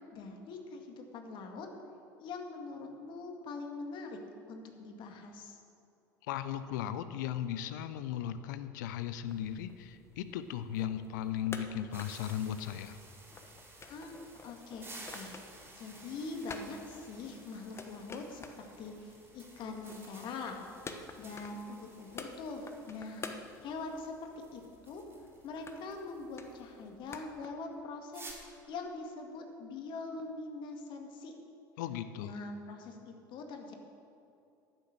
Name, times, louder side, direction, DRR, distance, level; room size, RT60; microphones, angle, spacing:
voice 1, 0.1-1.7 2.2-4.2 4.5-5.6 13.8-15.3 15.7-20.6 21.2-25.0 25.4-28.3 28.7-31.3 32.2-33.8, left 3 dB, 45° left, 3 dB, 2.1 m, -43 dB
voice 2, 6.2-13.0 31.8-32.3, left 10 dB, 65° left, 12 dB, 0.7 m, -37 dB
sound 1, 9.3-27.5, left 4 dB, 25° left, 1.2 m, -51 dB
sound 2, 11.9-26.6 28.1-28.3, right 2 dB, 25° right, 2.9 m, -54 dB
11.5 x 9.2 x 6.7 m, 2.6 s
figure-of-eight pair, 70°, 11 cm